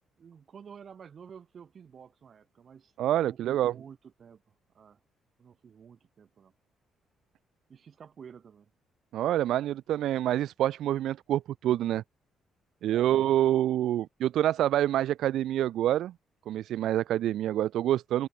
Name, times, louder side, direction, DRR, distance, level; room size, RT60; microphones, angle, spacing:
voice 1, 0.2-2.9 3.2-5.0 5.4-6.5 7.7-8.7 12.9-13.1 13.4-13.6, right 7 dB, 50° right, 6.2 m, -51 dB
voice 2, 3.0-3.7 9.1-12.0 12.8-16.1 16.5-18.3, right 12 dB, 80° right, 0.5 m, -27 dB
cardioid pair, 90°, 0 cm